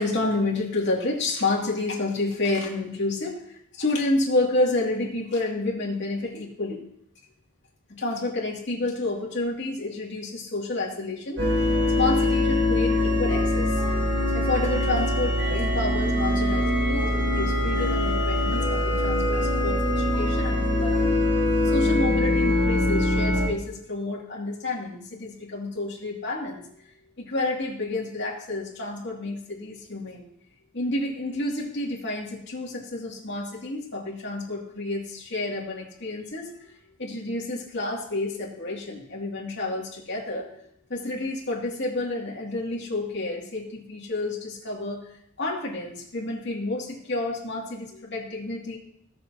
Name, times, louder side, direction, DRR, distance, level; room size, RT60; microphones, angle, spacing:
voice 1, 0.0-3.3 3.7-6.8 7.9-11.4 12.0-13.7 14.3-21.2 21.6-26.6 27.2-30.2 30.7-36.7 37.0-40.5 40.9-45.0 45.4-48.8, left 2 dB, 60° left, -3 dB, 2.5 m, -29 dB
sound 1, 11.4-23.5, left 1 dB, 65° right, 2.9 m, -23 dB
17.5 x 6.8 x 2.9 m, 0.73 s
head